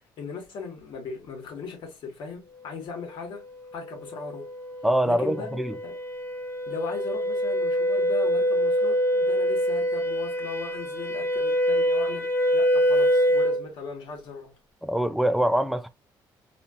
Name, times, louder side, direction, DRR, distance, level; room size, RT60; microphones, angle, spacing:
voice 1, 0.0-3.4 3.7-4.5 5.0-6.0 6.7-14.6, left 4 dB, 70° left, 2.1 m, -38 dB
sound 1, 3.7-13.6, equal, 25° left, 0.9 m, -25 dB
voice 2, 4.8-5.8 14.8-15.9, right 1 dB, ahead, 0.4 m, -24 dB
4.1 x 2.8 x 2.6 m
cardioid pair, 110°, 8 cm